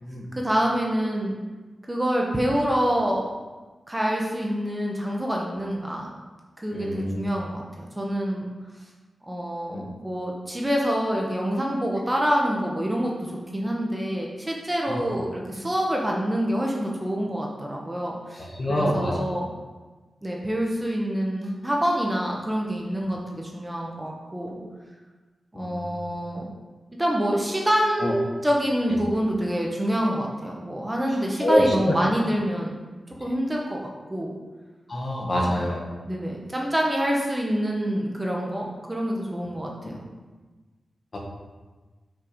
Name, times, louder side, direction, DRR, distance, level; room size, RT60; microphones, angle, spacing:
voice 1, 0.3-1.4 1.9-3.3 3.9-6.1 6.6-8.5 9.3-13.1 13.5-19.5 20.2-24.5 25.5-26.4 27.0-32.7 33.2-34.3 35.2-35.6 36.1-40.0, equal, 15° right, -1 dB, 0.9 m, -26 dB
voice 2, 6.7-7.2 9.7-9.8 14.8-15.2 18.4-19.1 25.5-25.8 28.0-28.1 31.4-32.0 34.9-35.8 41.1-41.2, equal, 40° left, -2 dB, 1.5 m, -25 dB
5.9 x 4.5 x 5.1 m, 1.3 s
wide cardioid pair, 115°, 0 cm